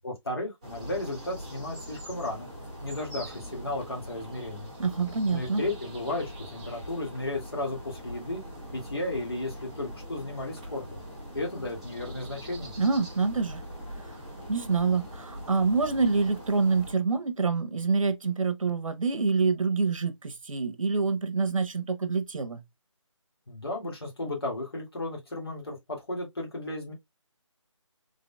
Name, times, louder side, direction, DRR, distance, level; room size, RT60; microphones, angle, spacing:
voice 1, 0.0-2.5 2.8-4.7 5.3-8.4 8.7-11.0 11.3-12.7 23.5-26.9, left 2 dB, 50° left, 2.0 m, -34 dB
sound 1, 0.6-16.9, equal, 10° right, 0.9 m, -42 dB
voice 2, 4.8-5.6 12.8-13.6 14.1-14.2 14.5-22.6, right 4 dB, 90° right, 0.8 m, -26 dB
3.7 x 3.7 x 2.3 m
figure-of-eight pair, 180°, 17 cm